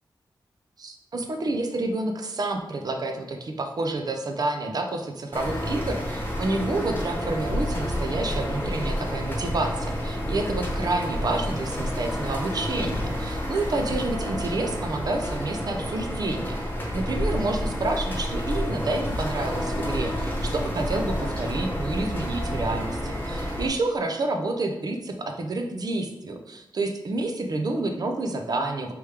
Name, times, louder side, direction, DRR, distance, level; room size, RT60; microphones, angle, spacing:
voice 1, 0.8-16.6 16.9-28.9, right 2 dB, 50° right, 4 dB, 0.5 m, -29 dB
sound 1, 5.3-23.7, equal, 25° left, 1.1 m, -29 dB
3.3 x 3.0 x 4.8 m, 0.92 s
wide cardioid pair, 120°, 8 cm